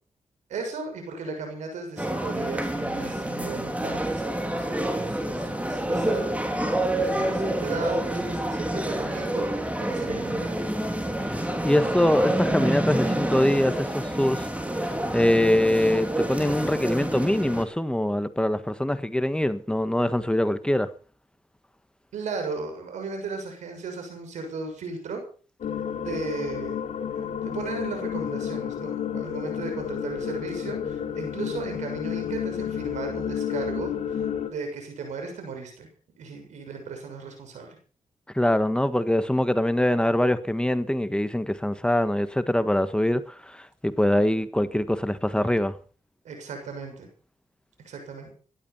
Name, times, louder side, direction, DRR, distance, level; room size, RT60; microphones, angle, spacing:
voice 1, 0.5-6.6 7.0-10.6 22.1-25.2 26.0-26.8 27.1-34.2 34.5-35.9 36.2-37.8 46.2-47.1 47.8-48.3, right 4 dB, 90° right, 6.7 m, -36 dB
sound 1, 2.0-17.6, right 1 dB, 10° right, 3.4 m, -28 dB
Guitar, 8.8-11.7, right 2 dB, 70° right, 6.0 m, -45 dB
voice 2, 11.3-20.9 38.3-45.7, left 1 dB, 5° left, 1.4 m, -24 dB
sound 2, 25.6-34.5, left 8 dB, 85° left, 3.1 m, -31 dB
17.0 x 12.0 x 5.7 m
cardioid pair, 70°, 12 cm